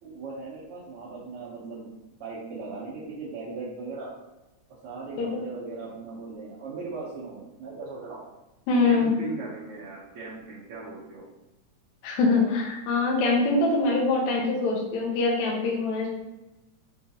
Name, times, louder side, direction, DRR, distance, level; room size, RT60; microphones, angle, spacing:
voice 1, 0.0-1.9 2.2-4.1 4.8-8.2 8.8-11.2, right 3 dB, 75° right, -7 dB, 1.3 m, -38 dB
voice 2, 8.7-9.1 12.0-16.1, left 3 dB, 75° left, -2 dB, 2.0 m, -24 dB
5.4 x 2.3 x 2.7 m, 1.0 s
omnidirectional pair, 3.4 m